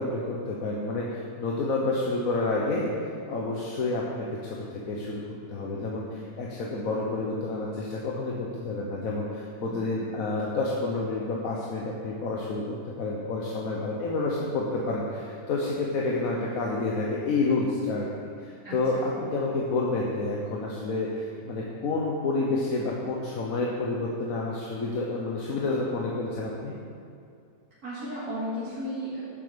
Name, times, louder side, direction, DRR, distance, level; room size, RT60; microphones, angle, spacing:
voice 1, 0.0-2.9 3.3-5.2 5.5-18.1 18.4-26.7, left 3 dB, 55° left, -3 dB, 1.3 m, -29 dB
voice 2, 9.6-10.0 18.6-19.0 27.8-29.2, equal, 55° right, -12 dB, 2.9 m, -35 dB
11.0 x 7.5 x 5.1 m, 2.4 s
omnidirectional pair, 1.9 m